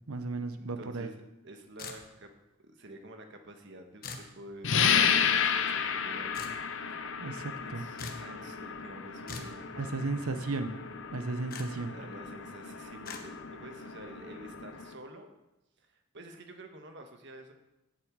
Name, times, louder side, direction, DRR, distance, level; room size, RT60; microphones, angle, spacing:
voice 1, 0.1-1.1 7.2-7.8 9.8-10.8 11.1-11.9, right 3 dB, 90° right, 8 dB, 0.9 m, -34 dB
voice 2, 0.6-2.3 2.6-6.3 6.9-7.1 7.6-10.3 11.9-15.3 15.8-17.5, right 1 dB, 55° right, 5 dB, 1.5 m, -49 dB
sound 1, 1.8-2.3 4.0-4.3 6.3-6.6 8.0-8.3 9.3-9.6 11.5-11.7 13.0-13.2, left 4 dB, 45° left, 1.3 m, -41 dB
sound 2, 4.6-14.9, left 7 dB, 60° left, 0.8 m, -32 dB
16.0 x 7.6 x 4.8 m, 0.96 s
head